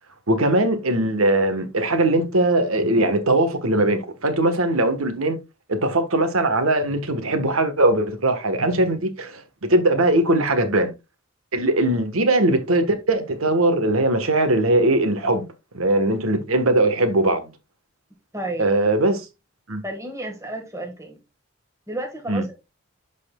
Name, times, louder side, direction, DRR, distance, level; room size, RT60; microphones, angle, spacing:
voice 1, 0.3-5.4 5.7-9.4 9.7-10.9 11.5-15.5 15.7-17.5 18.6-19.3 19.7-19.8 22.3-22.4, right 1 dB, 85° right, 1.3 m, -20 dB
voice 2, 18.3-18.7 19.8-21.2 21.9-22.6, right 1 dB, 15° right, 1.5 m, -32 dB
12.0 x 4.1 x 2.3 m
head